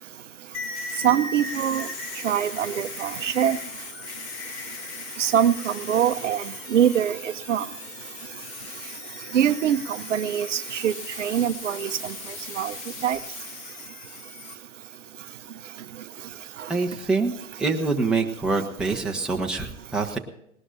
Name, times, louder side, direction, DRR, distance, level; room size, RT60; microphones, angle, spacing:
sound 1, 0.5-14.5, left 3 dB, 30° left, 2.0 m, -38 dB
voice 1, 1.0-1.9 2.2-3.6 5.2-6.4 6.7-7.7 9.3-9.8 10.1-10.9 11.2-11.9 12.6-12.7 13.0-13.2, right 9 dB, 55° right, 11 dB, 0.8 m, -23 dB
voice 2, 16.7-17.3 17.6-20.2, right 3 dB, ahead, 0 dB, 1.2 m, -25 dB
19.0 x 19.0 x 2.7 m, 0.75 s
figure-of-eight pair, 120°, 43 cm